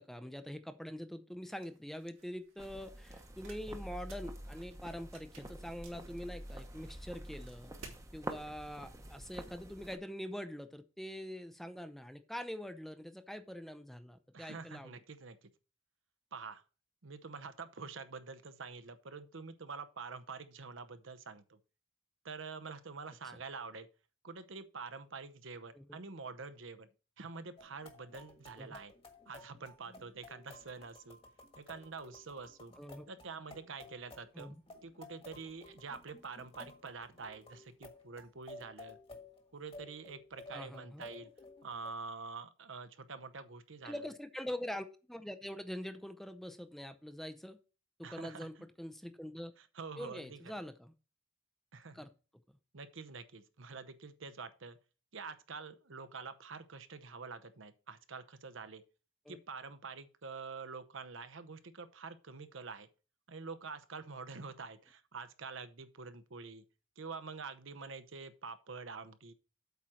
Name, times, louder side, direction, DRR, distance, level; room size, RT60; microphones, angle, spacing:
voice 1, 0.0-7.7 8.1-14.9 25.7-26.0 28.6-28.8 32.8-33.0 34.3-34.6 40.5-41.0 43.8-47.6 48.0-49.5 50.0-50.9 51.9-52.1 59.3-59.4, equal, ahead, 0.5 m, -44 dB
sound 1, 1.4-8.1, right 3 dB, 90° right, 3.0 m, -59 dB
sound 2, 2.6-10.0, right 1 dB, 15° right, 0.9 m, -47 dB
voice 2, 14.3-15.5 16.3-16.6 17.0-21.6 22.2-23.9 24.2-26.9 27.2-28.9 29.3-31.2 31.6-32.7 33.1-34.5 34.8-39.0 39.5-41.3 41.6-44.0 48.0-48.6 49.6-50.4 51.7-52.0 52.7-54.8 55.1-58.8 59.3-62.9 63.3-66.6 67.0-69.3, right 4 dB, 70° right, 0.9 m, -47 dB
sound 3, 27.6-41.9, left 2 dB, 30° left, 1.5 m, -55 dB
8.2 x 4.4 x 6.3 m
head